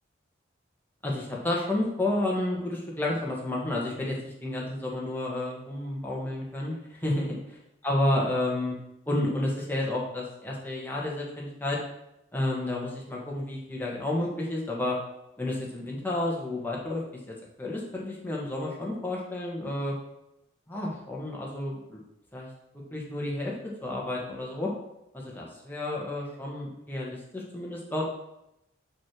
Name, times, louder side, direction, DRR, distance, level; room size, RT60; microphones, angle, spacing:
voice 1, 1.0-7.4 7.8-8.8 9.1-11.8 12.3-15.0 15.4-17.0 17.6-19.9 20.7-22.0 22.3-22.5 22.9-23.5 23.8-24.7 25.1-28.1, left 1 dB, 10° left, -4 dB, 1.7 m, -31 dB
6.3 x 5.6 x 6.1 m, 0.85 s
head